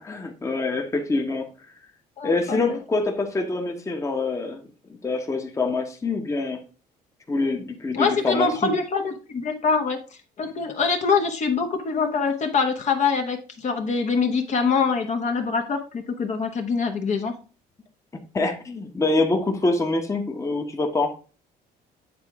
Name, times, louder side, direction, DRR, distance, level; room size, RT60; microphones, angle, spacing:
voice 1, 0.0-1.5 2.2-4.6 5.0-6.6 7.3-8.8 18.3-21.1, left 3 dB, 20° left, 3 dB, 1.1 m, -25 dB
voice 2, 2.2-2.8 7.9-10.0 10.4-17.3, left 5 dB, 45° left, 4 dB, 1.0 m, -24 dB
8.7 x 3.7 x 3.5 m, 0.35 s
cardioid pair, 110°, 17 cm